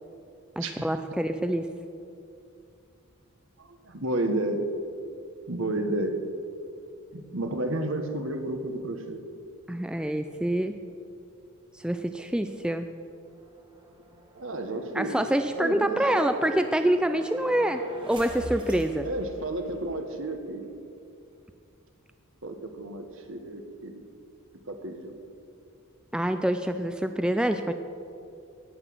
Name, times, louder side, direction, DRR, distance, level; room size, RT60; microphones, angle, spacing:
voice 1, 0.6-1.7 9.7-10.7 11.7-12.9 14.9-19.1 26.1-27.7, right 1 dB, 5° right, 8 dB, 0.3 m, -26 dB
voice 2, 3.6-4.7 5.5-6.3 7.1-9.2 14.4-15.2 15.6-16.2 19.0-20.7 22.4-24.0 24.7-25.1, right 2 dB, 65° right, 6 dB, 1.4 m, -31 dB
sound 1, 13.3-20.0, equal, 20° right, 1.6 m, -45 dB
18.0 x 6.1 x 7.7 m, 2.6 s
head